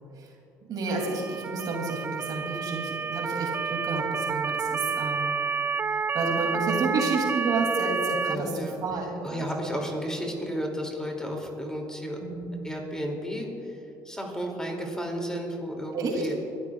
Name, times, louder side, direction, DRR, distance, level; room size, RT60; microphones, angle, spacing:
voice 1, 0.7-5.4 6.1-9.7 12.2-12.5 15.9-16.2, right 3 dB, 55° right, 1 dB, 2.8 m, -30 dB
Motor vehicle (road) / Siren, 0.9-8.4, right 5 dB, 25° right, 0.4 m, -29 dB
voice 2, 8.3-8.8 9.2-12.2 12.6-13.8 14.0-16.3, equal, 10° left, 1 dB, 2.6 m, -33 dB
25.5 x 13.0 x 2.4 m, 2.8 s
supercardioid pair, 80°, 8 cm